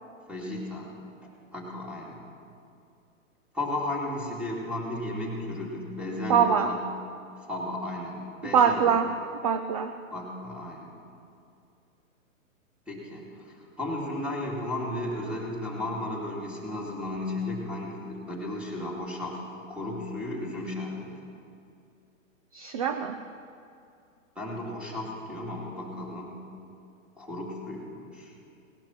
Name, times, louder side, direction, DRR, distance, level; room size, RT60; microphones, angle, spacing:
voice 1, 0.3-0.9 1.5-2.2 3.5-6.8 7.5-8.8 10.1-11.0 12.9-19.4 19.7-21.1 24.4-26.4 27.2-28.3, left 1 dB, 5° right, -3 dB, 2.5 m, -34 dB
voice 2, 6.3-6.8 8.5-10.0 22.5-23.2, right 7 dB, 30° right, 8 dB, 0.4 m, -24 dB
18.5 x 11.5 x 5.8 m, 2.5 s
hypercardioid pair, 140°, 40 cm